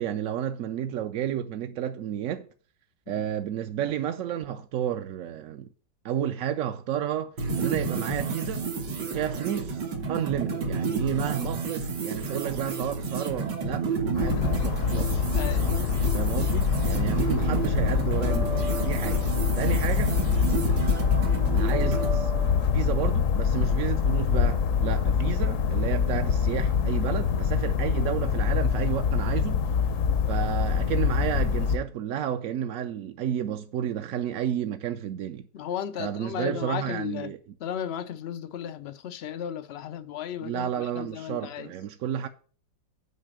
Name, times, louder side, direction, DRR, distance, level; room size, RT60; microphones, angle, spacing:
voice 1, 0.0-2.5 3.1-5.7 6.0-8.7 9.1-15.3 16.1-19.2 19.5-20.2 21.5-29.6 30.3-35.4 36.0-37.4 40.4-42.3, right 10 dB, 65° right, 0.8 m, -31 dB
sound 1, 7.4-22.2, right 4 dB, 85° right, 2.1 m, -31 dB
sound 2, 14.1-31.8, left 7 dB, 60° left, 1.0 m, -25 dB
voice 2, 15.3-15.7 19.6-19.8 35.5-37.3 37.6-41.7, left 9 dB, 80° left, 0.5 m, -35 dB
sound 3, 16.1-17.1 17.3-25.2, right 1 dB, 45° right, 0.5 m, -40 dB
8.3 x 4.9 x 7.5 m
omnidirectional pair, 1.8 m